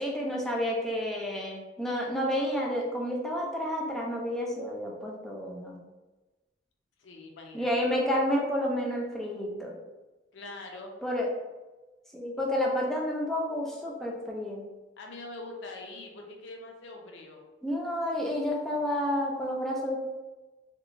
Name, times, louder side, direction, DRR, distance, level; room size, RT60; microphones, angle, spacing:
voice 1, 0.0-5.8 7.5-9.7 11.0-11.3 12.1-14.7 17.6-20.0, equal, ahead, -3 dB, 0.3 m, -30 dB
voice 2, 7.0-7.9 10.3-10.9 15.0-17.4, left 2 dB, 80° left, 2 dB, 0.5 m, -43 dB
2.9 x 2.1 x 2.4 m, 1.2 s
head